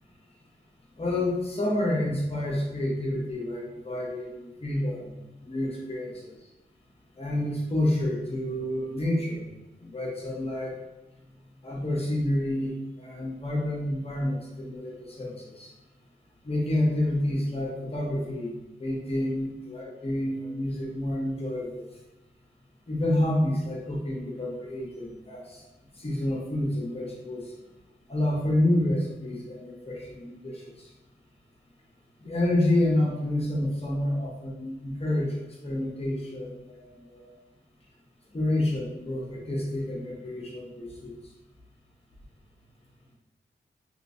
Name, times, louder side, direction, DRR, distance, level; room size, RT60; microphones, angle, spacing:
voice 1, 1.0-5.1 5.4-6.4 7.1-9.4 9.8-10.7 11.6-12.7 13.0-15.7 16.4-18.5 18.8-21.8 22.9-25.6 25.9-27.5 28.1-30.9 32.2-35.3 35.6-37.3 38.3-41.1, left 1 dB, 30° left, -3 dB, 0.9 m, -29 dB
3.1 x 3.0 x 2.6 m, 1.0 s
wide cardioid pair, 80°, 19 cm